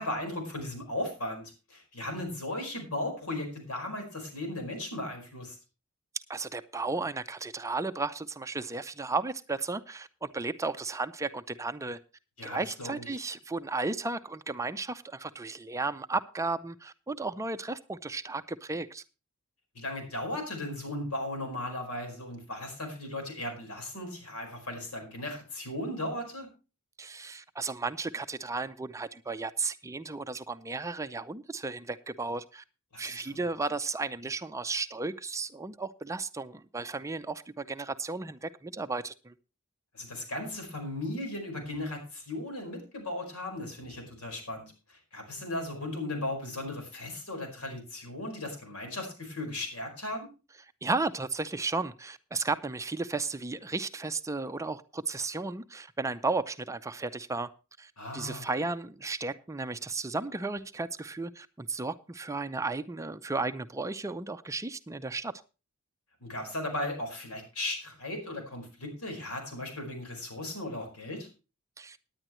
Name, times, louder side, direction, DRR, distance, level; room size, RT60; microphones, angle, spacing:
voice 1, 0.0-5.6 12.4-13.0 19.7-26.5 32.9-33.2 39.9-50.3 58.0-58.6 66.2-71.3, left 1 dB, 80° left, 3 dB, 4.8 m, -36 dB
voice 2, 6.3-12.0 12.4-19.0 27.0-32.6 33.0-39.3 50.8-57.5 57.8-65.3 71.8-72.0, right 3 dB, 15° right, 10 dB, 0.5 m, -34 dB
18.0 x 10.0 x 3.1 m, 0.32 s
head